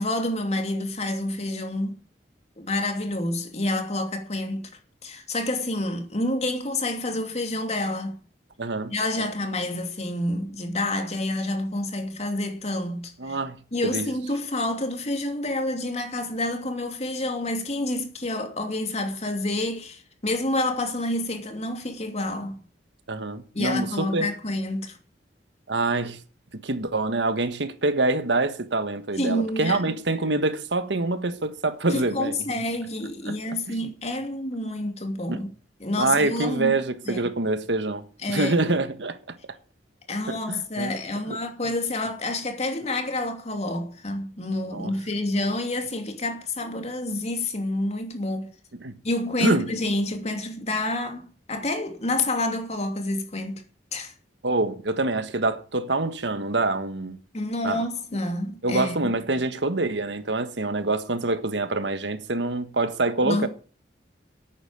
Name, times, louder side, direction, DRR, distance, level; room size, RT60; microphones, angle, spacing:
voice 1, 0.0-2.0 2.6-4.7 5.0-8.2 8.9-13.4 13.7-22.6 23.5-25.0 29.2-29.8 31.9-35.5 35.8-36.8 37.1-37.3 38.2-38.6 40.1-48.5 49.0-53.6 53.9-54.1 57.3-59.1 63.2-63.5, left 1 dB, 40° left, 2.8 m, -28 dB
voice 2, 8.6-9.3 13.2-13.6 13.8-14.1 23.1-24.3 25.7-26.2 26.5-32.3 33.3-33.4 33.7-33.8 35.3-35.4 36.0-39.2 40.3-40.9 41.3-41.4 44.7-44.9 48.8-48.9 49.4-49.7 54.4-57.2 57.6-57.8 58.6-63.5, right 2 dB, 85° right, 1.5 m, -26 dB
11.5 x 9.0 x 8.9 m
head